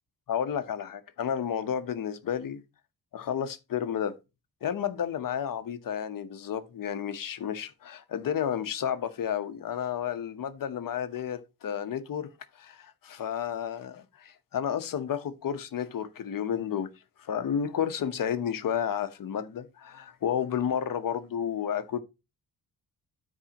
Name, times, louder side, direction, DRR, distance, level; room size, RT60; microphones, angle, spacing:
voice 1, 0.3-2.6 3.1-4.2 4.6-12.3 12.5-16.9 17.2-22.0, left 8 dB, 65° left, 1.1 m, -31 dB
12.5 x 4.8 x 3.0 m
wide cardioid pair, 175°, 36 cm